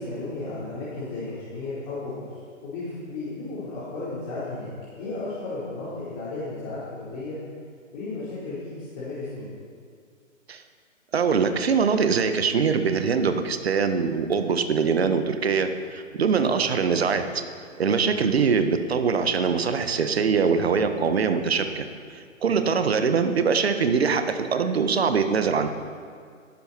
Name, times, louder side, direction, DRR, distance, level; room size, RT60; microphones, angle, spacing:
voice 1, 0.0-4.7 5.0-7.4 7.9-9.5 16.4-16.7 22.5-22.7, left 2 dB, 25° left, -10 dB, 4.3 m, -34 dB
voice 2, 11.1-17.4 17.8-21.8 22.4-25.7, right 5 dB, 50° right, 8 dB, 1.4 m, -23 dB
19.5 x 11.5 x 4.5 m, 2.2 s
figure-of-eight pair, 130°, 40 cm